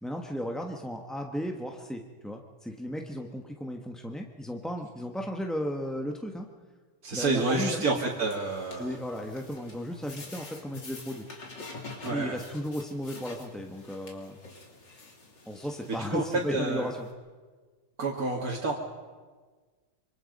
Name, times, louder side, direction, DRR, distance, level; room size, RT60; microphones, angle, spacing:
voice 1, 0.0-6.5 7.1-7.8 8.8-11.2 12.1-14.4 15.4-17.1, equal, ahead, 1 dB, 0.7 m, -35 dB
voice 2, 7.0-8.9 12.0-12.4 16.1-16.2 16.5-16.9 18.0-18.7, right 3 dB, 45° right, -3 dB, 2.5 m, -29 dB
sound 1, 7.3-17.1, left 3 dB, 55° left, 3.7 m, -48 dB
26.0 x 25.0 x 5.4 m, 1.4 s
omnidirectional pair, 2.4 m